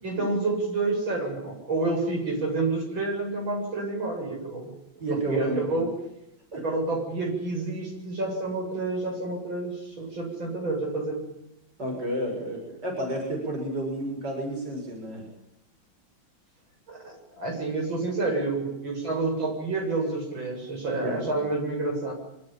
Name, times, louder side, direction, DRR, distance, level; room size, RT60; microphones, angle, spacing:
voice 1, 0.0-4.7 5.1-5.9 6.5-11.2 16.9-22.1, right 3 dB, 75° right, 1 dB, 8.7 m, -29 dB
voice 2, 5.0-5.8 6.5-6.6 11.8-15.3 21.0-21.4, right 1 dB, 55° right, 2 dB, 7.4 m, -31 dB
26.5 x 25.5 x 8.8 m, 0.84 s
omnidirectional pair, 2.2 m